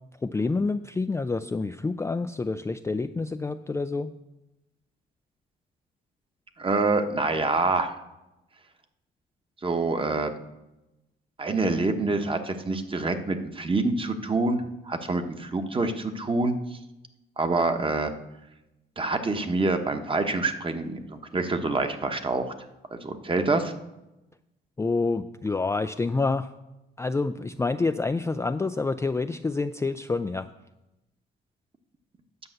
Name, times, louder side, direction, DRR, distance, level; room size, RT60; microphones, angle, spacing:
voice 1, 0.2-4.1 24.8-26.5 27.0-30.5, left 3 dB, 15° left, 9 dB, 0.3 m, -28 dB
voice 2, 6.6-7.9 9.6-10.3 11.4-16.8 17.4-18.1 19.0-22.5 23.0-23.7, right 3 dB, 25° right, 7 dB, 1.1 m, -26 dB
9.8 x 5.5 x 7.8 m, 0.95 s
cardioid pair, 90°, 20 cm